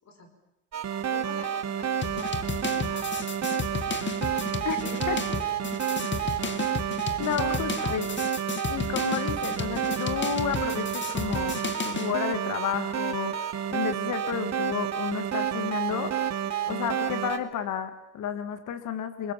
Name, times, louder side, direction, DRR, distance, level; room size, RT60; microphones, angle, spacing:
sound 1, 0.7-17.4, right 9 dB, 65° right, 2.7 m, -30 dB
voice 1, 1.1-5.1 5.4-5.6 5.9-6.6 7.5-8.0, left 3 dB, 60° left, 6 dB, 5.1 m, -46 dB
sound 2, 2.0-12.1, left 5 dB, 40° left, 2.0 m, -33 dB
voice 2, 7.2-8.1 8.7-11.6 11.8-16.1 16.7-19.3, left 8 dB, 80° left, 10 dB, 1.9 m, -31 dB
29.5 x 21.0 x 7.5 m, 0.90 s
cardioid pair, 90°, 30 cm